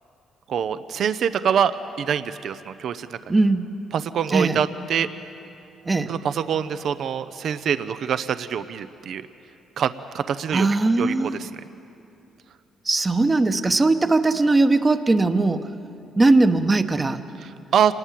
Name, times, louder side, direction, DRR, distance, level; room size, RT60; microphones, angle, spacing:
voice 1, 0.5-1.7 2.0-3.4 3.9-5.1 6.1-9.2 9.8-10.7 11.0-11.6 17.4-17.9, right 8 dB, 65° right, 12 dB, 0.7 m, -25 dB
voice 2, 3.3-3.6 4.3-4.6 5.8-6.1 10.5-11.4 12.9-15.6 16.2-17.2, right 2 dB, 20° right, 10 dB, 1.0 m, -19 dB
26.5 x 20.0 x 7.5 m, 2.7 s
cardioid pair, 100°, 0 cm